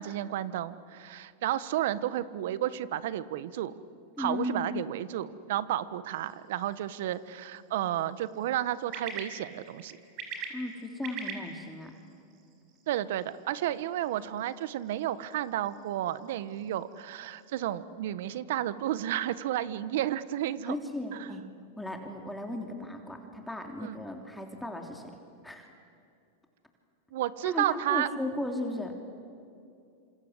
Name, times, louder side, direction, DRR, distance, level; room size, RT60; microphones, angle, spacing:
voice 1, 0.0-3.7 4.2-10.0 12.9-20.7 21.2-21.3 23.8-24.0 27.1-28.1, right 12 dB, 70° right, 16 dB, 1.2 m, -32 dB
voice 2, 4.2-4.7 10.5-11.9 20.7-21.5 21.8-25.1 25.4-25.7 27.4-28.9, left 1 dB, 5° left, 3 dB, 3.1 m, -36 dB
sound 1, 6.1-17.7, right 5 dB, 50° right, 5.4 m, -47 dB
27.0 x 27.0 x 8.1 m, 2.5 s
hypercardioid pair, 105°, 0 cm